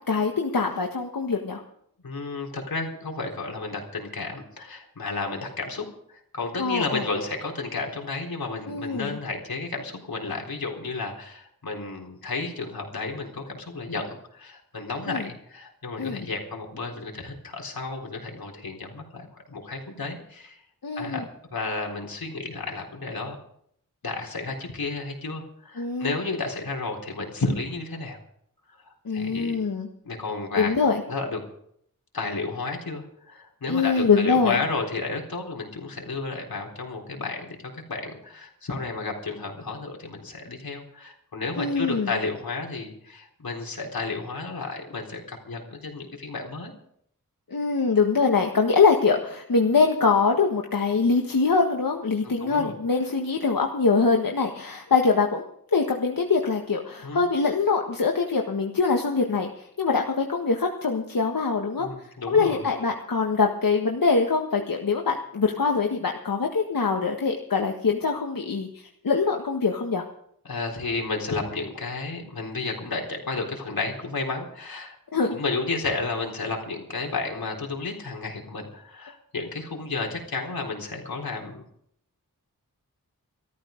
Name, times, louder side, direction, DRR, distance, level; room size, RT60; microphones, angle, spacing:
voice 1, 0.1-1.6 6.6-7.0 8.7-9.2 15.1-15.3 16.0-16.2 20.8-21.2 25.8-26.2 29.0-29.9 30.5-31.0 33.7-34.6 41.6-42.1 47.5-61.9 62.3-70.0 75.1-75.4, left 4 dB, 70° left, 2 dB, 1.7 m, -23 dB
voice 2, 2.0-20.6 21.0-21.2 21.5-23.4 24.0-28.2 29.1-29.5 30.0-30.7 31.1-31.4 32.1-46.7 52.2-52.7 57.0-57.2 61.8-62.6 70.4-75.0 75.3-81.6, left 3 dB, 85° left, 1 dB, 4.0 m, -32 dB
14.5 x 14.0 x 5.2 m, 0.69 s
wide cardioid pair, 55°, 35 cm